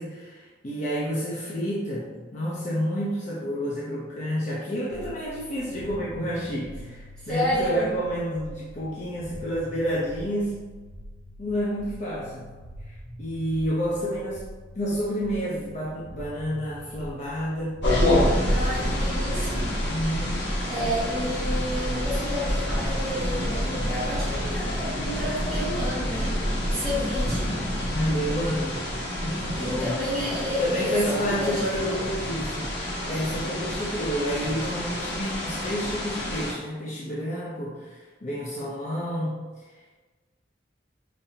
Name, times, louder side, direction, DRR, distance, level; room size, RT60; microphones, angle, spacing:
voice 1, 0.0-10.8 11.4-12.5 12.8-14.4 14.7-17.8 19.9-20.4 20.8-20.9 27.8-30.1 30.6-32.7 33.0-39.3, equal, 45° left, -6 dB, 0.6 m, -30 dB
sound 1, 4.9-18.6, equal, 60° right, 1.2 m, -44 dB
voice 2, 7.2-7.9 18.5-19.8 20.7-26.3 26.7-27.6 29.6-32.0, left 1 dB, 5° left, -11 dB, 1.3 m, -30 dB
sound 2, 17.8-36.5, equal, 80° left, 1.1 m, -28 dB
5.2 x 2.6 x 2.7 m, 1.3 s
head